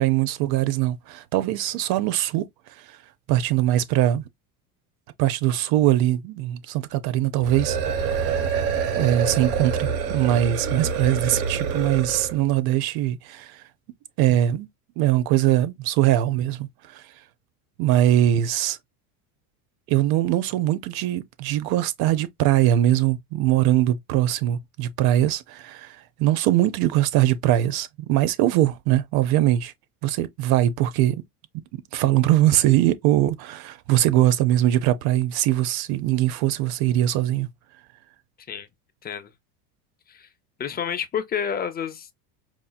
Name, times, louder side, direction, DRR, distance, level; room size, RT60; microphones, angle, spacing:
voice 1, 0.0-2.5 2.8-3.0 3.3-4.2 5.2-8.4 9.0-13.6 14.2-14.7 15.0-17.0 17.8-18.8 19.9-29.7 30.0-31.2 31.7-37.5, right 13 dB, 55° right, 0.8 m, -22 dB
sound 1, 7.4-12.4, right 6 dB, 85° right, 1.3 m, -26 dB
voice 2, 40.6-42.1, left 7 dB, 20° left, 0.6 m, -29 dB
4.7 x 2.9 x 2.3 m
supercardioid pair, 110°, 44 cm